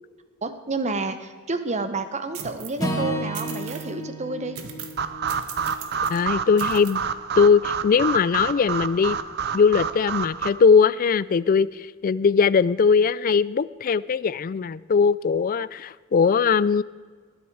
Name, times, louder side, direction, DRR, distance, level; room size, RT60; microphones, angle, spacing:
voice 1, 0.4-4.6, right 3 dB, 30° right, 9 dB, 1.0 m, -29 dB
sound 1, 2.3-2.8 3.3-3.9 4.5-5.0 5.3-6.2 6.6-6.9, right 7 dB, 80° right, 1.5 m, -39 dB
Acoustic guitar / Strum, 2.8-7.1, right 1 dB, 15° left, 1.7 m, -33 dB
sound 2, 5.0-10.5, right 6 dB, 50° right, 0.6 m, -28 dB
voice 2, 6.1-7.0 7.4-9.2 9.5-11.7 12.0-16.8, left 5 dB, 40° left, 19 dB, 0.3 m, -20 dB
20.0 x 10.5 x 4.7 m, 1.5 s
head